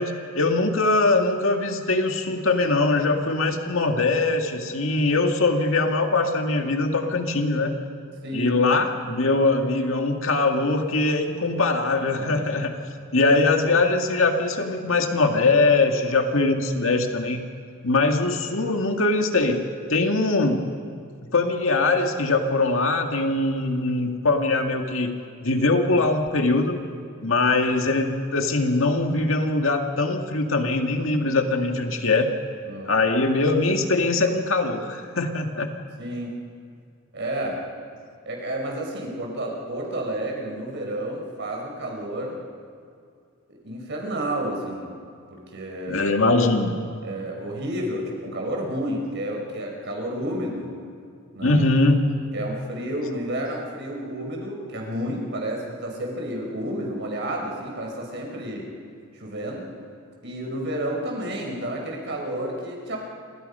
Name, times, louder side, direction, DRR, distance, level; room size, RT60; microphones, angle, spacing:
voice 1, 0.0-7.7 8.3-12.8 13.1-17.4 17.8-19.6 19.9-20.6 21.3-26.8 27.2-32.3 32.9-35.7 45.9-46.8 51.4-52.1, left 3 dB, 70° left, 4 dB, 2.1 m, -22 dB
voice 2, 8.2-8.6 12.2-12.4 32.7-32.9 36.0-36.3 37.1-37.6 38.3-42.4 43.5-44.9 45.3-46.1 47.0-50.8 51.3-51.6 52.3-58.7 59.1-59.7 60.2-63.0, right 1 dB, 60° right, 0 dB, 5.7 m, -30 dB
29.0 x 26.0 x 5.6 m, 2.3 s
head